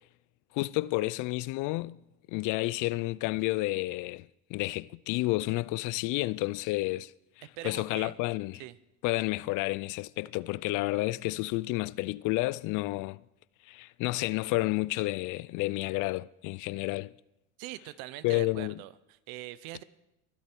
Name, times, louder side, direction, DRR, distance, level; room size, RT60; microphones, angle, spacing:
voice 1, 0.5-2.0 2.3-4.3 4.5-7.1 7.6-8.6 9.0-13.2 13.7-17.1 18.2-18.8, left 20 dB, 50° left, 0.5 m, -30 dB
voice 2, 7.6-8.2 8.5-8.8 17.6-19.8, right 16 dB, 65° right, 0.9 m, -42 dB
23.0 x 8.2 x 4.5 m
hypercardioid pair, 90°, 39 cm